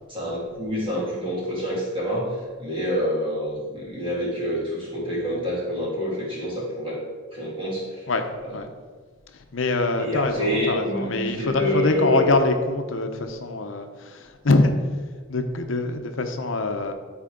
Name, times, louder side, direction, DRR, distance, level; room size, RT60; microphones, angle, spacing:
voice 1, 0.1-7.0 7.3-8.1 8.4-8.6 9.9-12.3, equal, 25° right, -6 dB, 2.7 m, -27 dB
voice 2, 9.5-14.7 15.3-16.9, left 3 dB, 80° left, 6 dB, 0.7 m, -24 dB
13.0 x 4.4 x 3.8 m, 1.5 s
head